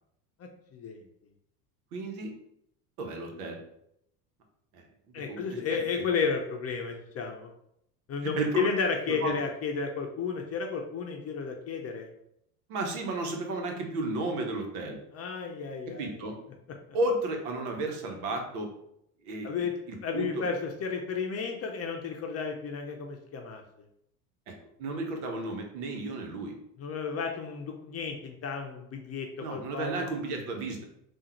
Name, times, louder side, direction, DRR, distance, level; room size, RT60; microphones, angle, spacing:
voice 1, 0.4-1.0 5.1-7.5 8.1-12.1 15.1-16.1 19.4-19.7 20.0-23.6 26.8-30.1, left 5 dB, 35° left, 3 dB, 0.6 m, -33 dB
voice 2, 1.9-2.3 3.0-3.6 4.7-6.1 8.2-8.7 9.1-9.4 12.7-15.0 16.0-16.4 16.9-18.7 19.2-20.4 24.5-26.6 29.4-30.8, right 2 dB, 80° right, 3 dB, 1.2 m, -33 dB
3.7 x 2.5 x 4.3 m, 0.76 s
hypercardioid pair, 95°, 44 cm